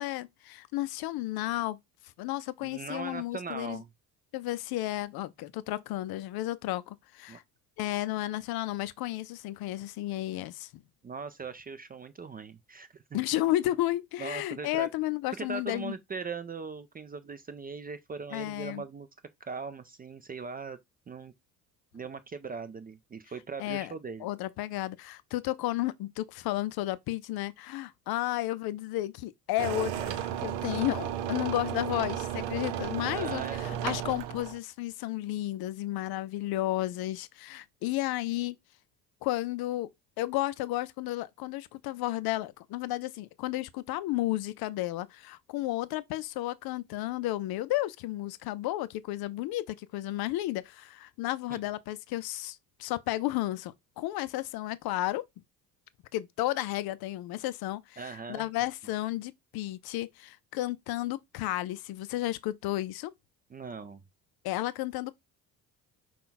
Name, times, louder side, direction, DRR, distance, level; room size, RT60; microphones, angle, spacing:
voice 1, 0.0-1.8 2.2-3.8 4.3-7.4 7.8-10.8 13.1-15.9 18.3-18.8 23.6-23.9 24.2-38.6 39.2-39.9 40.2-55.2 56.1-63.1 64.4-65.2, left 16 dB, 50° left, 0.5 m, -33 dB
voice 2, 2.6-3.9 7.3-7.4 11.0-13.2 14.2-14.9 15.3-19.1 19.4-20.8 21.1-21.3 21.9-24.3 33.1-33.7 51.5-51.6 58.0-58.5 63.5-64.0, right 5 dB, 20° right, 0.4 m, -40 dB
sound 1, 29.6-34.6, right 10 dB, 75° right, 0.7 m, -34 dB
5.6 x 2.4 x 3.8 m
hypercardioid pair, 55°, 49 cm